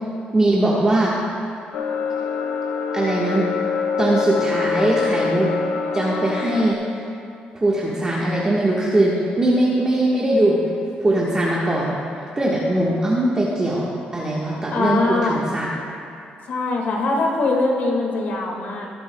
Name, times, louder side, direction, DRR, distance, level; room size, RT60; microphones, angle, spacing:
voice 1, 0.3-1.1 2.9-3.5 4.0-5.5 5.9-6.8 7.5-10.6 11.0-12.0 12.3-13.9 14.1-15.7, right 1 dB, 20° right, -6 dB, 1.4 m, -20 dB
sound 1, 1.7-6.7, left 5 dB, 80° left, 0.8 m, -24 dB
voice 2, 14.7-15.4 16.5-18.9, left 3 dB, 65° left, 0 dB, 1.9 m, -22 dB
20.0 x 7.8 x 2.3 m, 2.7 s
cardioid pair, 90°, 3 cm